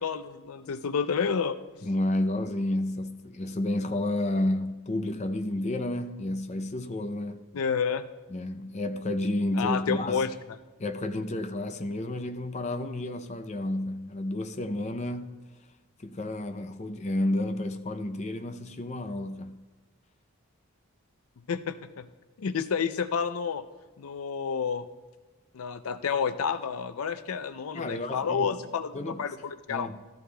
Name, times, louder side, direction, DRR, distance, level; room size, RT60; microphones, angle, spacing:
voice 1, 0.0-1.6 7.5-8.0 9.5-10.3 21.5-22.1 22.4-23.6 24.0-24.9 25.5-28.9 29.2-29.9, left 6 dB, 85° left, 0.5 m, -29 dB
voice 2, 1.8-7.4 8.3-10.3 10.8-15.4 16.0-19.6 27.7-28.6 28.9-29.2 29.7-30.0, left 1 dB, 30° left, 0.5 m, -31 dB
15.5 x 13.0 x 2.3 m
head